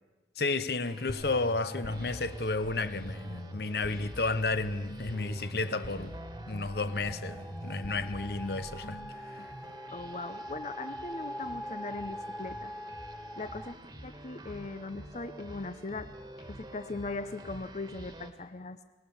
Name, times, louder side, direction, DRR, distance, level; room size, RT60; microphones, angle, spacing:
voice 1, 0.4-6.2 6.5-9.0, left 3 dB, 60° left, 0.9 m, -32 dB
sound 1, 0.8-18.3, right 1 dB, 25° right, 1.7 m, -49 dB
sound 2, 1.1-9.1, equal, 85° left, 2.4 m, -44 dB
sound 3, 1.2-5.0 5.5-13.7, equal, ahead, 0.7 m, -45 dB
voice 2, 9.9-12.7 13.4-13.8 14.0-16.1 16.5-18.8, left 3 dB, 40° left, 0.7 m, -39 dB
24.5 x 19.5 x 7.1 m
head